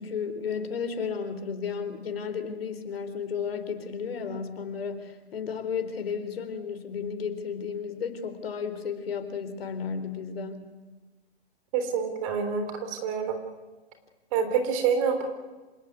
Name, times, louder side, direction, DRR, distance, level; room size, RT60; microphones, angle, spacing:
voice 1, 0.0-10.7, left 6 dB, 65° left, 9 dB, 4.2 m, -33 dB
voice 2, 11.7-13.4 14.3-15.3, right 6 dB, 30° right, 7 dB, 3.6 m, -27 dB
27.0 x 18.0 x 9.5 m, 1.2 s
hypercardioid pair, 145°, 32 cm